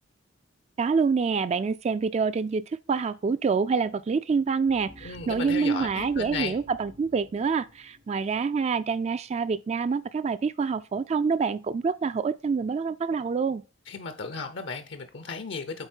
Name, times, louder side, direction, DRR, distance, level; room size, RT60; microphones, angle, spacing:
voice 1, 0.8-13.6, right 5 dB, 35° right, 0.3 m, -26 dB
sound 1, 4.7-8.9, left 1 dB, 80° right, 3.0 m, -51 dB
voice 2, 5.0-6.6 13.9-15.9, left 4 dB, 65° left, 0.7 m, -35 dB
8.0 x 4.1 x 4.4 m
head